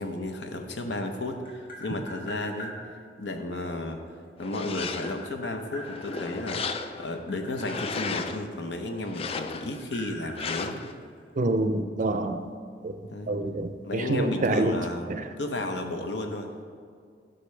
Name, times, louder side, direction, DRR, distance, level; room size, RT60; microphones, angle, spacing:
voice 1, 0.0-2.7 3.2-4.0 4.4-10.8 13.1-13.3 13.8-15.0 15.4-16.5, left 2 dB, 75° left, 5 dB, 0.8 m, -33 dB
Tap, 1.3-2.7 4.1-6.2 7.0-9.1 9.4-11.4, equal, 50° left, 2.1 m, -43 dB
sound 1, 4.4-5.3 5.8-7.1 7.6-8.5 9.0-9.8 10.4-10.9, left 4 dB, 35° left, 0.3 m, -34 dB
voice 2, 11.4-12.5 12.8-12.9 13.3-14.8 15.1-15.3, right 2 dB, 45° right, 8 dB, 0.5 m, -27 dB
11.5 x 5.7 x 3.3 m, 2.2 s
head